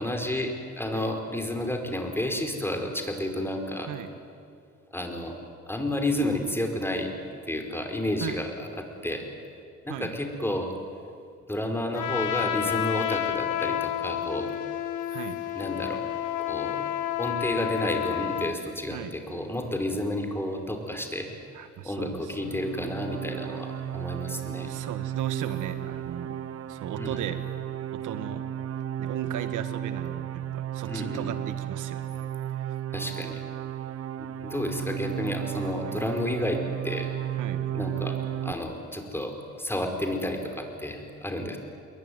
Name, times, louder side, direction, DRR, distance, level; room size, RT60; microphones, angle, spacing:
voice 1, 0.0-3.9 4.9-5.4 5.7-7.1 7.5-9.2 9.8-10.7 11.5-14.5 15.5-16.0 16.5-16.9 17.2-21.3 21.8-24.7 26.9-27.2 30.9-31.3 32.9-33.4 34.2-37.1 37.7-38.2 38.4-41.6, left 1 dB, 10° left, 4 dB, 4.9 m, -31 dB
Trumpet, 11.9-18.6, left 11 dB, 80° left, 2.1 m, -30 dB
voice 2, 21.5-22.5 24.6-26.4 26.7-27.4 27.9-28.4 29.0-32.0 35.9-36.0 37.4-37.6, right 9 dB, 85° right, 10 dB, 1.7 m, -37 dB
sound 1, 22.2-38.5, right 11 dB, 50° right, 1.1 m, -34 dB
27.5 x 22.5 x 9.6 m, 2.4 s
cardioid pair, 90°, 30 cm